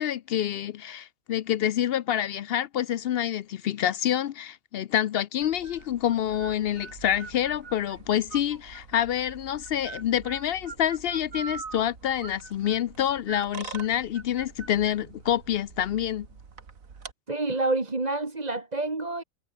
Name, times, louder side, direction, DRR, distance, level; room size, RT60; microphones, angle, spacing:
voice 1, 0.0-16.3, left 10 dB, 65° left, 0.6 m, -27 dB
sound 1, 5.4-17.1, right 5 dB, 85° right, 2.4 m, -44 dB
voice 2, 17.3-19.2, right 2 dB, 30° right, 2.2 m, -28 dB
omnidirectional pair, 1.4 m